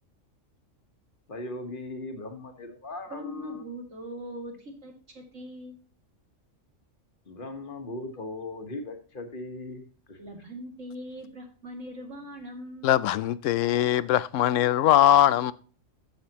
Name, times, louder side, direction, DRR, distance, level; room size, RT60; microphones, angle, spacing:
voice 1, 1.3-3.7 7.3-10.2, left 2 dB, 45° left, 6 dB, 1.6 m, -38 dB
voice 2, 3.1-5.8 10.2-12.9, equal, 75° right, 1 dB, 2.7 m, -41 dB
voice 3, 12.8-15.5, left 12 dB, 80° left, 18 dB, 0.9 m, -21 dB
13.5 x 5.8 x 2.9 m, 0.39 s
omnidirectional pair, 1.3 m